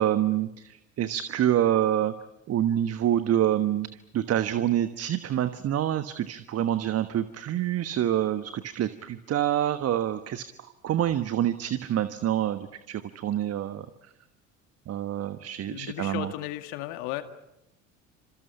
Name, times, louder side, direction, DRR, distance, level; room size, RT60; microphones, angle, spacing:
voice 1, 0.0-2.1 2.5-3.9 4.1-10.5 10.8-13.9 14.9-16.3, right 11 dB, 40° right, 11 dB, 1.3 m, -26 dB
voice 2, 15.7-17.2, left 15 dB, 60° left, 8 dB, 2.2 m, -35 dB
30.0 x 27.0 x 5.7 m, 0.86 s
figure-of-eight pair, 65°, 40 cm